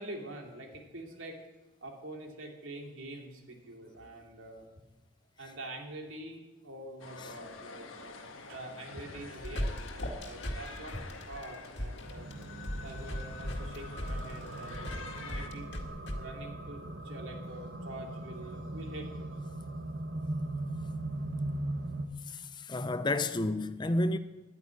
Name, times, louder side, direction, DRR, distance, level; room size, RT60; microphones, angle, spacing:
voice 1, 0.0-1.4 1.8-4.7 5.4-12.3 12.8-15.7 16.2-19.3, right 1 dB, 85° right, 2.6 m, -45 dB
sound 1, 7.0-15.5, left 4 dB, 90° left, 1.4 m, -47 dB
sound 2, 9.1-16.2, equal, 60° left, 2.0 m, -37 dB
sound 3, 12.1-22.1, right 1 dB, 65° right, 1.4 m, -39 dB
voice 2, 22.3-24.2, left 2 dB, 20° left, 0.5 m, -31 dB
11.0 x 9.4 x 9.6 m
head